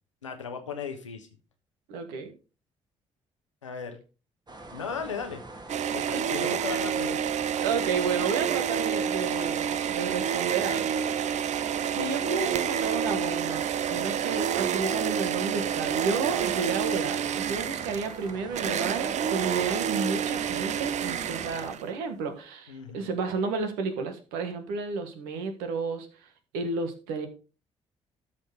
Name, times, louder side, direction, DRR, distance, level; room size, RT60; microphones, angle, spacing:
voice 1, 0.2-1.3 3.6-4.0 4.7-5.4 5.9-7.3 22.7-23.1, left 6 dB, 85° left, 5 dB, 1.1 m, -36 dB
voice 2, 1.9-2.3 6.0-6.2 6.7-6.8 7.6-26.3 26.5-27.3, right 5 dB, 70° right, 7 dB, 1.5 m, -32 dB
sound 1, 4.5-21.7, right 2 dB, 25° right, 1.9 m, -45 dB
sound 2, 5.7-22.0, right 8 dB, 50° right, 0.7 m, -29 dB
13.0 x 4.5 x 4.9 m, 0.33 s
figure-of-eight pair, 45°, 16 cm